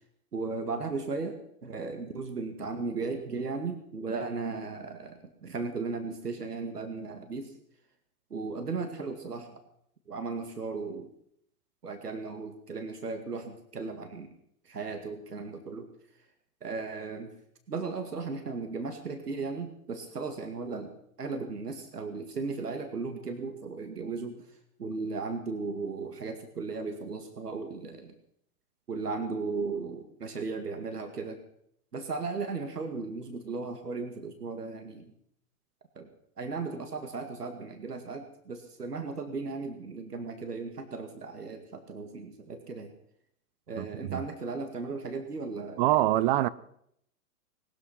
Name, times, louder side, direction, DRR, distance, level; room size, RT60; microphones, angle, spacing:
voice 1, 0.3-7.5 8.3-9.6 10.1-11.1 11.8-14.3 14.7-15.9 16.6-17.3 17.7-24.5 24.8-28.1 28.9-31.4 31.9-35.1 36.0-36.1 36.4-42.9 43.7-46.3, right 4 dB, 90° right, 2.3 m, -36 dB
voice 2, 43.8-44.2 45.8-46.5, right 15 dB, 35° right, 0.6 m, -25 dB
20.0 x 12.5 x 5.8 m
hypercardioid pair, 115°, 46 cm